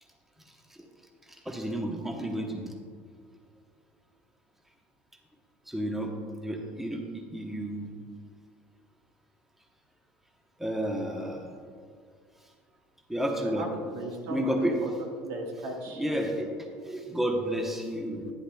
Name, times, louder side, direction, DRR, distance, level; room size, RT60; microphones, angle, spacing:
voice 1, 1.4-2.7 5.7-6.1 6.4-7.0 7.3-7.9 10.6-11.5 13.1-13.7 14.3-14.8 16.0-16.5 16.8-18.3, equal, 5° right, 1 dB, 1.0 m, -31 dB
voice 2, 13.9-16.0, right 2 dB, 80° right, 1 dB, 1.5 m, -37 dB
11.0 x 10.0 x 2.3 m, 2.1 s
cardioid pair, 130°, 6 cm